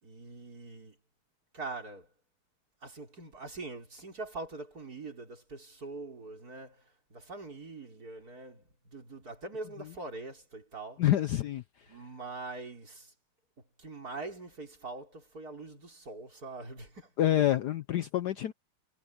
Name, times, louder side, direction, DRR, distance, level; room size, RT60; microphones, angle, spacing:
voice 1, 0.0-1.0 1.5-2.1 2.8-11.0 11.9-13.1 13.8-17.1, right 3 dB, 40° right, 5.2 m, -43 dB
voice 2, 11.0-11.6 17.2-18.5, left 12 dB, 70° left, 1.0 m, -27 dB
omnidirectional pair, 2.4 m